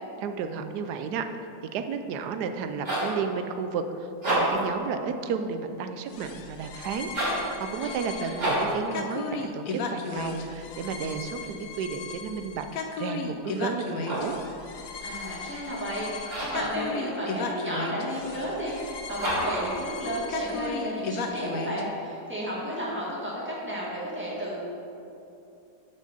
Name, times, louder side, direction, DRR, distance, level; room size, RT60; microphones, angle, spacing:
voice 1, 0.2-1.3 1.7-12.7 13.0-14.4, right 6 dB, 80° right, 8 dB, 1.1 m, -32 dB
sound 1, 2.7-3.2 4.1-4.7 7.0-7.5 8.4-8.8 13.8-14.4 16.2-16.7 19.2-19.7, right 1 dB, 45° right, 2.5 m, -28 dB
sound 2, 6.1-21.8, left 4 dB, 65° left, 1.0 m, -36 dB
voice 2, 7.7-8.4 15.0-24.6, equal, 5° right, -8 dB, 1.8 m, -33 dB
6.2 x 5.5 x 6.8 m, 2.7 s
omnidirectional pair, 1.7 m